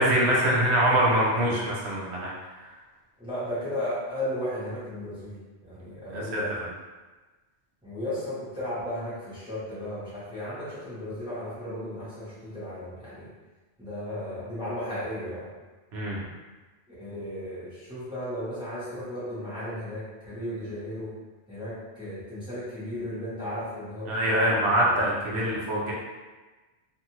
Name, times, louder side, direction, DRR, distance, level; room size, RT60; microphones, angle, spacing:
voice 1, 0.0-2.3 6.1-6.4 15.9-16.2 24.1-25.9, right 1 dB, 70° right, -4 dB, 1.0 m, -24 dB
voice 2, 3.2-5.4 5.6-6.6 7.8-13.3 13.8-15.5 16.9-21.1 21.5-25.1, left 1 dB, 5° right, -11 dB, 1.0 m, -35 dB
2.6 x 2.5 x 2.9 m, 1.2 s
omnidirectional pair, 1.2 m